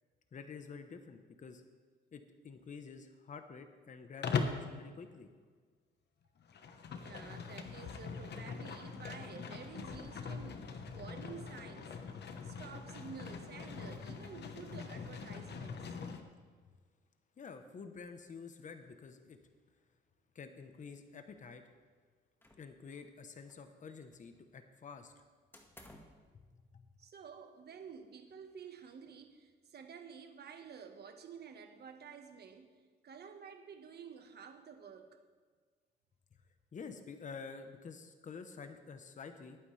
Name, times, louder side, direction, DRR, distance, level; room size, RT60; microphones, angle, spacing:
voice 1, 0.3-1.6 2.1-5.3 17.4-19.4 20.3-21.6 22.6-25.1 26.7-26.8 36.7-39.6, left 5 dB, 40° left, 7 dB, 1.0 m, -49 dB
Livestock farm animals working animals, 4.2-4.7 6.4-16.2, left 5 dB, 60° left, 1.2 m, -41 dB
voice 2, 6.9-12.1 12.4-16.1 27.0-32.7 33.0-35.2, right 6 dB, 55° right, 6 dB, 1.5 m, -51 dB
sound 1, 22.4-23.2 23.4-24.4 25.5-26.3, left 1 dB, 10° left, 1.8 m, -59 dB
20.0 x 9.1 x 3.4 m, 1.5 s
cardioid pair, 90°, 20 cm